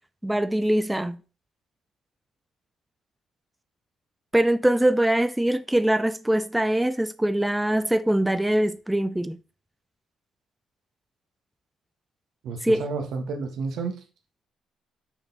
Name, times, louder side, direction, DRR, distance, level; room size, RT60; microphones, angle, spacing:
voice 1, 0.2-1.2 4.3-9.4 12.6-12.8, right 1 dB, 5° right, 0.4 m, -23 dB
voice 2, 12.4-14.0, right 4 dB, 75° right, 1.3 m, -31 dB
6.2 x 4.5 x 4.0 m
cardioid pair, 90°, 0 cm